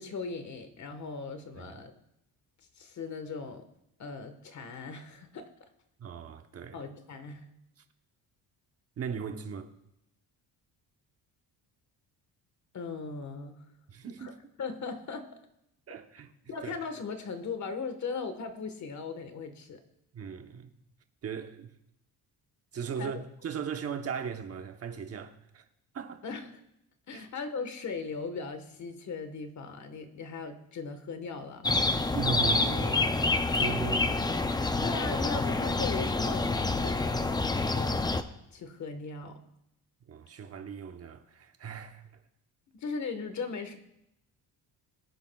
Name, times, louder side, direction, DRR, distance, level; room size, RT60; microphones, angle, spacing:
voice 1, 0.0-1.9 2.8-3.7 4.0-5.7 6.7-7.4 12.7-13.6 14.2-15.3 16.5-19.8 23.0-23.1 26.2-26.6 27.1-31.7 34.8-38.0 38.5-39.4 42.7-43.8, left 4 dB, 45° left, 1.4 m, -38 dB
voice 2, 6.0-6.8 9.0-9.7 13.9-14.5 15.9-16.3 16.6-16.7 20.1-20.7 21.2-21.7 22.7-25.6 25.9-26.2 27.1-27.3 32.1-34.7 40.1-42.0, right 7 dB, 40° right, 0.9 m, -38 dB
sound 1, 31.6-38.2, left 3 dB, 10° left, 0.4 m, -27 dB
21.5 x 9.9 x 2.3 m
cardioid pair, 150°, 39 cm